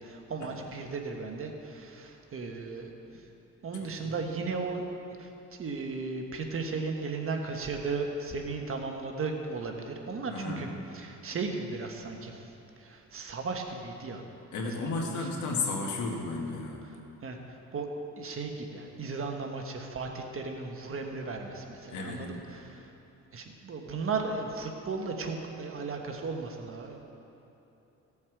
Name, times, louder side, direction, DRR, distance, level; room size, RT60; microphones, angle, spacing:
voice 1, 0.0-3.2 3.6-4.9 5.2-5.3 5.6-10.7 10.9-12.5 12.8-14.2 14.6-15.1 17.2-17.9 18.2-22.9 23.3-27.0, right 4 dB, 45° right, 3 dB, 1.4 m, -36 dB
voice 2, 3.8-4.1 10.3-10.7 14.5-16.8 21.9-22.2, left 3 dB, 75° left, 0 dB, 1.8 m, -33 dB
16.5 x 7.2 x 4.8 m, 2.9 s
cardioid pair, 90°, 30 cm